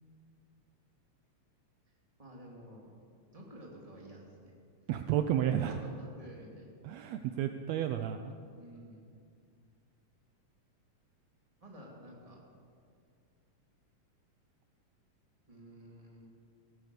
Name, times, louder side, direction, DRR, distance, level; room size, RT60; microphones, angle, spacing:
voice 1, 1.9-2.9 3.3-4.5 5.6-6.7 8.5-9.1 11.6-12.4 15.5-16.3, equal, 10° right, -2 dB, 2.3 m, -51 dB
voice 2, 4.9-5.8 6.8-8.3, right 10 dB, 75° right, 8 dB, 1.7 m, -31 dB
18.0 x 9.9 x 6.8 m, 2.3 s
omnidirectional pair, 3.4 m